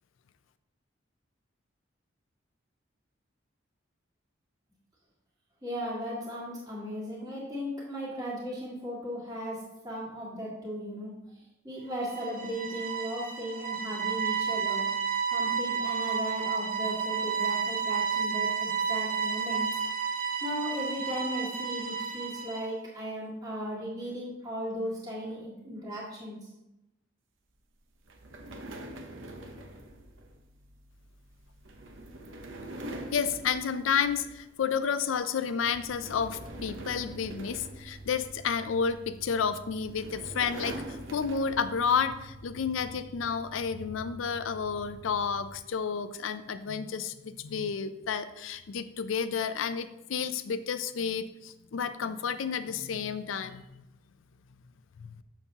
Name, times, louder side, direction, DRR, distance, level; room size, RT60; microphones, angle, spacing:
voice 1, 5.6-11.1 11.6-14.9 15.3-19.7 20.4-26.5, equal, 20° right, -7 dB, 1.9 m, -36 dB
sound 1, 11.9-22.7, right 6 dB, 45° right, 0.8 m, -31 dB
sound 2, 28.1-34.6 35.0-35.3 35.7-38.7 39.5-41.9, right 1 dB, 80° right, 0.8 m, -44 dB
voice 2, 33.1-53.6 55.0-55.1, left 6 dB, 85° left, 13 dB, 0.4 m, -31 dB
sound 3, 35.6-45.6, right 2 dB, 50° left, 0.9 m, -50 dB
7.1 x 6.7 x 2.9 m, 0.92 s
head